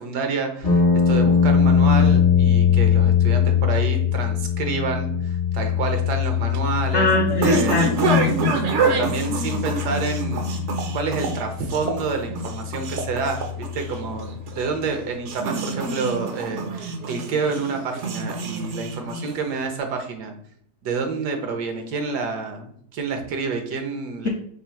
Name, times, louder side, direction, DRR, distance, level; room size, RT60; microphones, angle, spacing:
voice 1, 0.0-7.1 7.4-7.9 8.8-10.5 10.9-20.3 20.8-24.3, right 4 dB, 75° right, 5 dB, 1.4 m, -28 dB
sound 1, 0.6-14.7, left 7 dB, 30° left, 0.7 m, -22 dB
sound 2, 6.1-19.6, right 4 dB, 60° right, 0.8 m, -27 dB
voice 2, 6.9-8.6, left 4 dB, 65° left, 0 dB, 0.7 m, -21 dB
3.7 x 3.3 x 4.4 m, 0.63 s
omnidirectional pair, 1.8 m